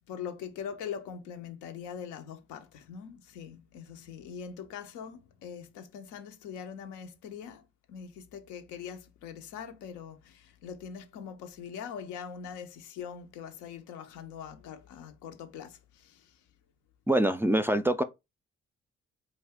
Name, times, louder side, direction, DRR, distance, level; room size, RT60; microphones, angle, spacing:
voice 1, 0.0-16.4, left 7 dB, 90° left, 0.5 m, -42 dB
voice 2, 17.1-18.0, right 1 dB, 10° right, 0.3 m, -24 dB
2.4 x 2.2 x 3.4 m
supercardioid pair, 50°, 29 cm